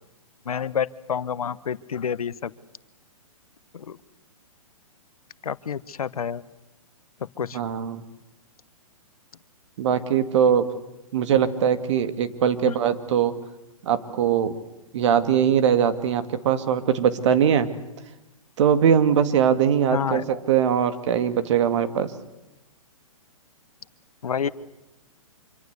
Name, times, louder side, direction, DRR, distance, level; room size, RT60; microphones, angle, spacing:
voice 1, 0.4-2.5 3.7-4.0 5.4-6.4 7.4-7.6 12.6-12.8 19.9-20.2 24.2-24.5, left 7 dB, 85° left, 17 dB, 1.0 m, -28 dB
voice 2, 7.5-8.0 9.8-10.7 11.1-13.3 13.8-14.6 14.9-17.7 18.6-22.1, right 8 dB, 55° right, 11 dB, 2.2 m, -21 dB
26.0 x 24.0 x 8.2 m, 0.93 s
hypercardioid pair, 140°, 18 cm